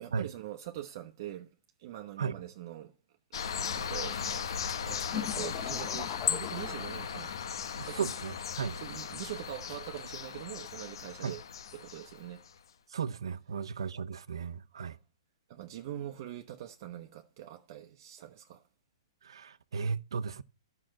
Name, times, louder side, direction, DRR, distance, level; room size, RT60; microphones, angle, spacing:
voice 1, 0.0-2.9 3.6-4.5 4.8-7.3 7.9-8.1 8.7-11.4 11.7-12.4 14.7-15.0 15.5-18.6, right 13 dB, 45° right, 0.9 m, -43 dB
sound 1, 3.3-12.5, left 7 dB, 70° left, 1.1 m, -37 dB
sound 2, 5.1-7.5, left 11 dB, 25° left, 0.9 m, -40 dB
voice 2, 7.8-8.8 11.2-11.3 12.9-15.0 19.2-20.4, right 6 dB, 85° right, 0.8 m, -35 dB
11.5 x 5.9 x 7.7 m
hypercardioid pair, 150°, 3 cm